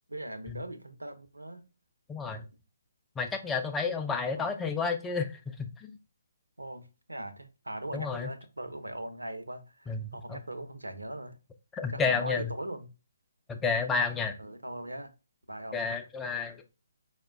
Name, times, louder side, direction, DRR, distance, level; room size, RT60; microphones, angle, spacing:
voice 1, 0.1-1.6 4.3-4.4 6.6-11.4 11.9-12.9 14.4-15.1 15.5-15.8, right 1 dB, 80° right, 0.6 m, -40 dB
voice 2, 2.1-2.5 3.2-5.9 7.9-8.3 9.9-10.1 11.7-12.5 13.5-14.4 15.7-16.6, left 5 dB, 10° left, 0.4 m, -31 dB
4.8 x 2.1 x 3.5 m
figure-of-eight pair, 140°, 0 cm